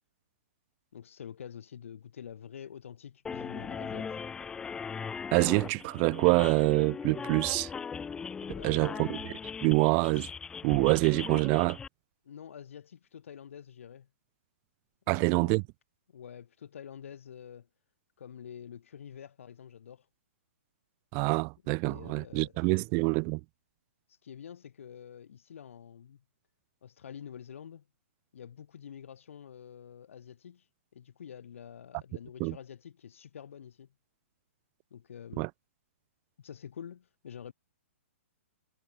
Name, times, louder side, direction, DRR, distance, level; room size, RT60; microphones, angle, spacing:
voice 1, 0.9-4.2 8.5-9.1 12.2-14.1 15.1-15.6 16.1-17.7 18.2-20.1 21.8-22.8 24.1-26.2 26.8-27.8 28.3-33.9 34.9-35.4 36.4-37.5, left 8 dB, 70° left, 5.6 m, -47 dB
sound 1, 3.3-11.9, left 6 dB, 10° left, 0.6 m, -39 dB
voice 2, 5.3-7.7 8.6-9.3 9.6-10.3 10.6-11.8 15.1-15.6 21.1-23.4 32.4-32.6 35.4-35.5, right 36 dB, 30° right, 0.4 m, -26 dB
hypercardioid pair, 140°, 7 cm